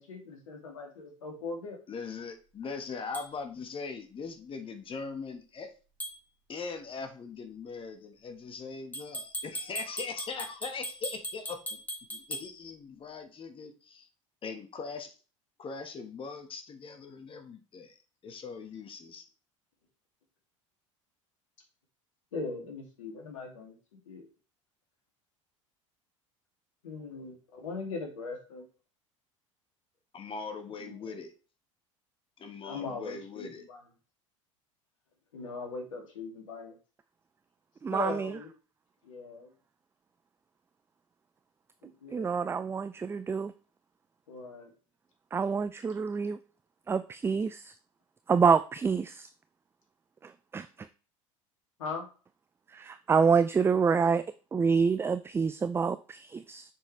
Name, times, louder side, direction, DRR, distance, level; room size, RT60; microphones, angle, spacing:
voice 1, 0.0-1.8 22.3-23.8 24.1-24.3 26.8-28.7 30.8-31.1 32.6-33.8 35.3-36.8 37.9-38.5 39.0-39.5 41.8-42.4 44.3-44.7 51.8-52.1, left 4 dB, 75° left, 2.5 m, -40 dB
voice 2, 1.9-5.7 6.5-11.8 12.1-14.1 14.4-15.1 15.6-19.2 30.1-31.3 32.4-33.6, left 4 dB, 30° left, 1.5 m, -41 dB
sound 1, 3.1-3.3 6.0-6.2 8.9-12.5, equal, 10° left, 2.7 m, -39 dB
voice 3, 37.8-38.3 42.1-43.5 45.3-46.4 46.9-47.6 48.3-49.3 50.5-50.7 52.7-54.2 54.5-56.6, right 5 dB, 15° right, 0.4 m, -27 dB
7.3 x 6.3 x 3.2 m
figure-of-eight pair, 70°, 17 cm